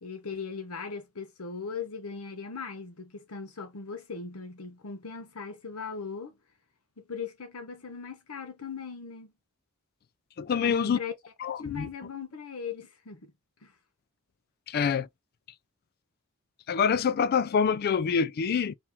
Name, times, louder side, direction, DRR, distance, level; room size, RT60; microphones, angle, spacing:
voice 1, 0.0-6.4 7.0-9.3 10.6-11.1 11.6-13.3 13.6-13.7, left 5 dB, 75° left, 0.9 m, -39 dB
voice 2, 10.4-11.0 11.4-11.9 14.7-15.1 16.7-18.8, left 6 dB, 45° left, 0.3 m, -26 dB
3.6 x 2.8 x 3.0 m
head